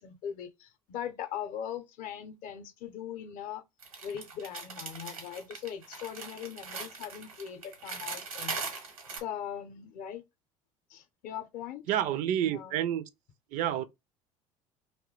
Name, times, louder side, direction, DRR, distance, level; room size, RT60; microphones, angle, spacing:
voice 1, 0.0-3.6 4.0-10.2 10.9-11.8 12.5-12.8, left 9 dB, 50° left, 0.6 m, -40 dB
sound 1, 3.8-9.2, right 4 dB, 80° right, 1.0 m, -40 dB
voice 2, 11.9-13.1 13.5-13.8, right 10 dB, 45° right, 0.4 m, -29 dB
2.7 x 2.2 x 3.7 m
figure-of-eight pair, 65°, 18 cm